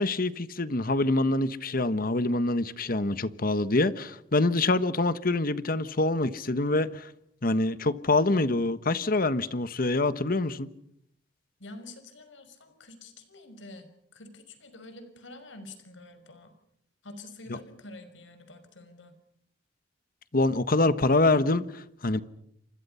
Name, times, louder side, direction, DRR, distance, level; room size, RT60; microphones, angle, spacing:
voice 1, 0.0-7.1 7.4-10.7 20.3-22.2, left 2 dB, 50° left, 1.3 m, -25 dB
voice 2, 11.6-16.5 17.0-19.2, left 2 dB, 85° left, 5.7 m, -47 dB
29.0 x 26.0 x 5.7 m
head